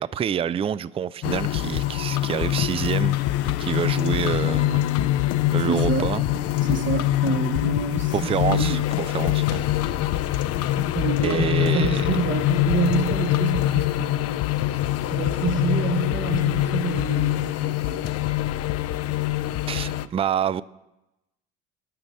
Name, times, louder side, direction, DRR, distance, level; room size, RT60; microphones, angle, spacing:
voice 1, 0.0-4.8 5.5-6.2 8.1-9.7 10.0-10.3 11.2-12.2 19.7-20.6, right 8 dB, 20° right, 0.3 m, -27 dB
sound 1, 1.2-20.1, left 14 dB, 55° left, 0.6 m, -24 dB
Bass guitar, 4.4-10.7, left 12 dB, 85° left, 1.2 m, -42 dB
voice 2, 5.7-8.8 10.8-14.5 15.1-18.3, right 5 dB, 40° right, 0.9 m, -28 dB
11.5 x 5.2 x 7.5 m
hypercardioid pair, 60°, 29 cm